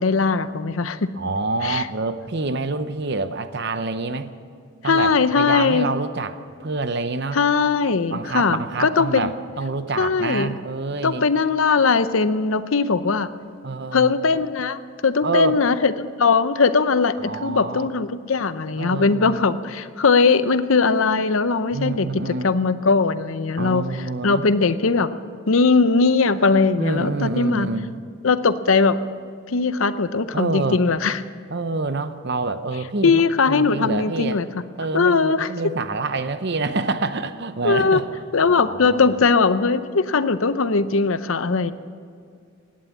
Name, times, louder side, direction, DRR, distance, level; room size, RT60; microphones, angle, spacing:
voice 1, 0.0-1.1 1.6-1.8 4.8-5.9 7.3-9.3 10.0-10.5 11.0-13.3 13.9-25.1 25.5-27.7 28.2-29.0 29.5-31.2 33.0-34.5 34.9-35.5 37.6-38.0 38.3-41.7, left 4 dB, 70° left, 13 dB, 0.7 m, -20 dB
voice 2, 1.1-4.3 4.8-5.1 5.4-7.4 8.1-9.3 9.6-11.2 13.6-14.1 15.2-15.6 17.2-17.9 18.8-19.4 21.7-22.5 23.6-24.4 26.8-27.9 30.3-30.8 31.5-34.4 34.8-38.1 38.5-39.1, right 3 dB, 50° right, 11 dB, 0.8 m, -27 dB
17.0 x 11.5 x 7.2 m, 2.2 s
head